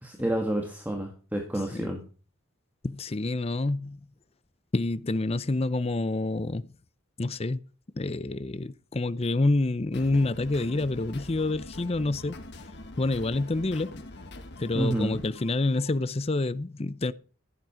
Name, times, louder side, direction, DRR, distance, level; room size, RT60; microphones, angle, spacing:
voice 1, 0.0-2.0 14.7-15.2, right 1 dB, 10° right, 1.9 m, -29 dB
voice 2, 2.8-4.0 4.7-6.7 7.2-7.6 8.0-12.4 13.0-14.0 14.6-17.1, left 2 dB, 30° left, 0.6 m, -28 dB
sound 1, 9.9-15.9, left 2 dB, 55° left, 1.6 m, -44 dB
15.0 x 9.1 x 5.0 m
head